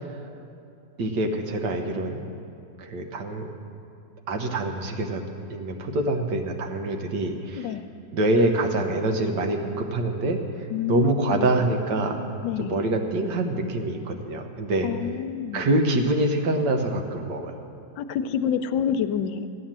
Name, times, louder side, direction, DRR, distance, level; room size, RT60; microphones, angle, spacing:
voice 1, 1.0-2.2 2.8-3.5 4.3-5.2 5.5-7.7 8.1-10.4 10.9-12.2 12.6-14.9 15.5-17.5, right 2 dB, 70° right, 4 dB, 1.7 m, -25 dB
voice 2, 7.6-7.9 10.7-11.6 12.4-12.8 14.8-15.7 18.0-19.5, left 8 dB, 85° left, 11 dB, 1.3 m, -28 dB
14.5 x 9.4 x 7.4 m, 2.6 s
omnidirectional pair, 2.0 m